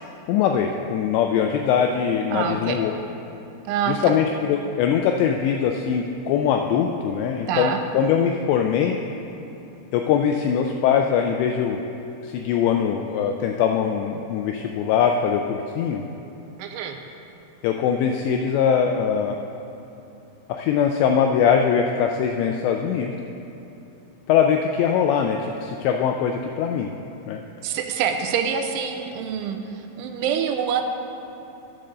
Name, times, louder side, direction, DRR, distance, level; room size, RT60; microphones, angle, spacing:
voice 1, 0.3-3.0 3.9-9.0 9.9-11.8 12.2-16.0 17.6-19.4 20.5-23.1 24.3-26.9 27.3-27.4, left 7 dB, 85° left, 3 dB, 2.5 m, -22 dB
voice 2, 2.3-2.8 3.7-4.1 7.5-7.8 16.6-17.0 27.6-30.8, right 7 dB, 90° right, 5 dB, 3.1 m, -26 dB
10.5 x 7.6 x 6.7 m, 2.9 s
omnidirectional pair, 5.5 m